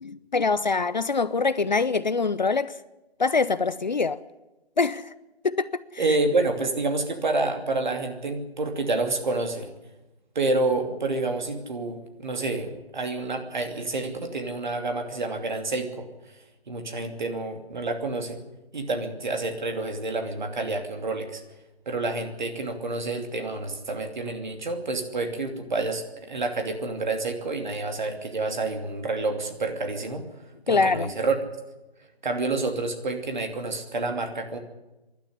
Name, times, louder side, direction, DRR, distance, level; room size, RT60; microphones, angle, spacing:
voice 1, 0.0-2.8 3.2-4.2 4.8-5.1 5.4-6.0 30.7-31.1, left 4 dB, 45° left, 0.6 m, -24 dB
voice 2, 6.0-9.7 10.3-16.4 16.7-18.4 18.7-21.4 21.9-30.3 30.7-31.4 32.2-34.6, right 3 dB, 45° right, 2.8 m, -28 dB
23.5 x 12.0 x 10.0 m
figure-of-eight pair, 165°, 31 cm